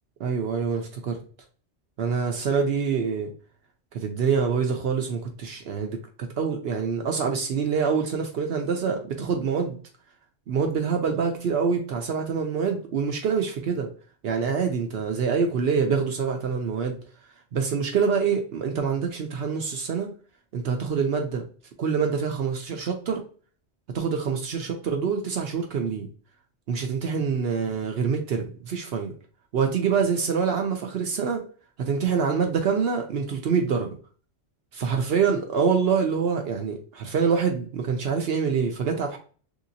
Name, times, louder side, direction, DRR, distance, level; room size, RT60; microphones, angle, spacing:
voice 1, 0.2-1.2 2.0-3.3 3.9-9.8 10.5-13.9 14.2-17.0 17.5-20.1 20.5-21.4 21.8-23.2 23.9-26.1 26.7-29.1 29.5-31.4 31.8-33.9 34.7-39.2, right 6 dB, 65° right, 4 dB, 0.8 m, -25 dB
3.2 x 2.8 x 2.6 m, 0.41 s
omnidirectional pair, 1.2 m